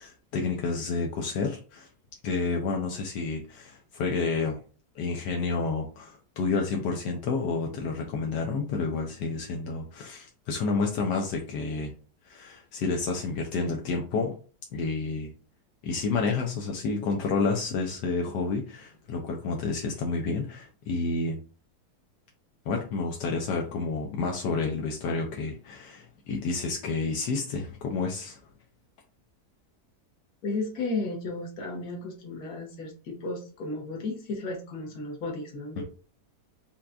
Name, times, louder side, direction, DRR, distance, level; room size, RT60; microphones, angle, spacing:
voice 1, 0.0-1.9 2.2-4.6 4.9-11.9 12.2-14.3 14.7-15.3 15.8-21.4 22.7-28.4 35.8-35.9, left 4 dB, 85° left, 1 dB, 1.3 m, -30 dB
voice 2, 30.4-35.8, left 3 dB, 60° left, 0 dB, 1.5 m, -34 dB
5.6 x 2.3 x 2.5 m, 0.38 s
omnidirectional pair, 1.8 m